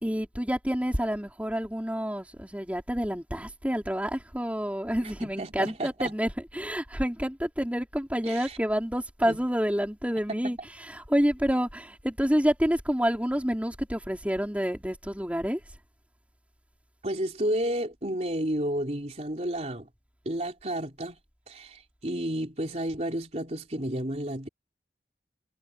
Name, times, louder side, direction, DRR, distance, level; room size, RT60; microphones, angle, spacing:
voice 1, 0.0-10.6 10.9-15.6, equal, 10° right, 4.9 m, -28 dB
voice 2, 5.0-6.1 8.2-8.6 9.2-9.4 10.3-10.7 17.0-19.9 20.3-21.2 21.5-24.5, right 1 dB, 40° right, 3.8 m, -32 dB
head